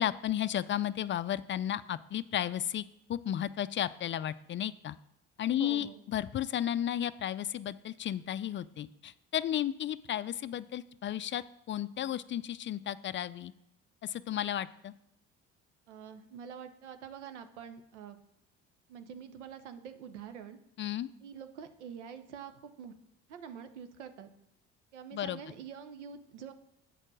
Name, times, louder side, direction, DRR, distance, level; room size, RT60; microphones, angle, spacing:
voice 1, 0.0-2.8 3.1-5.0 5.4-13.5 14.0-14.9 20.8-21.1 25.1-25.4, left 11 dB, 35° left, 15 dB, 0.4 m, -33 dB
voice 2, 5.6-6.0 15.9-18.2 18.9-20.6 21.2-22.9 23.3-24.3 24.9-26.5, right 7 dB, 90° right, 9 dB, 0.8 m, -46 dB
8.2 x 4.4 x 6.1 m, 0.80 s
hypercardioid pair, 60°, 34 cm